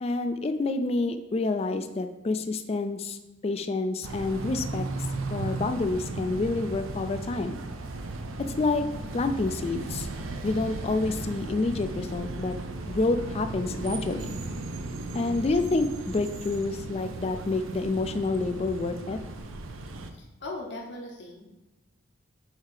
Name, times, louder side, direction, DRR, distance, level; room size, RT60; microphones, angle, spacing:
voice 1, 0.0-4.9 5.3-7.6 8.6-8.9 9.1-10.1 10.4-12.6 12.9-14.4 15.1-19.2, left 3 dB, 30° left, 8 dB, 0.3 m, -28 dB
sound 1, 4.0-20.1, right 2 dB, 85° right, 0.6 m, -36 dB
voice 2, 20.1-21.5, left 2 dB, 55° left, 0 dB, 0.8 m, -39 dB
8.0 x 2.8 x 4.9 m, 1.0 s
head